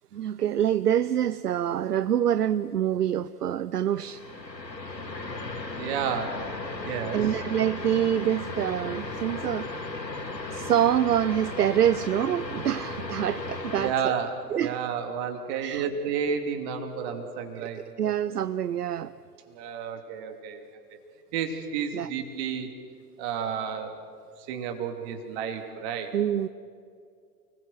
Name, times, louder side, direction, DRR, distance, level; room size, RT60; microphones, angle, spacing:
voice 1, 0.1-4.2 7.1-9.7 10.5-14.2 14.5-14.8 15.6-15.9 17.6-17.7 18.0-19.1 21.9-22.1 26.1-26.5, right 10 dB, 70° right, 15 dB, 0.7 m, -26 dB
sound 1, 3.9-13.9, left 3 dB, 85° left, 2.2 m, -36 dB
voice 2, 5.8-6.4 6.8-7.2 13.7-18.1 19.5-20.6 21.3-22.7 23.2-24.0 24.5-26.1, right 7 dB, 40° right, 6 dB, 3.0 m, -31 dB
29.0 x 20.5 x 7.7 m, 2.2 s
figure-of-eight pair, 100°, 49 cm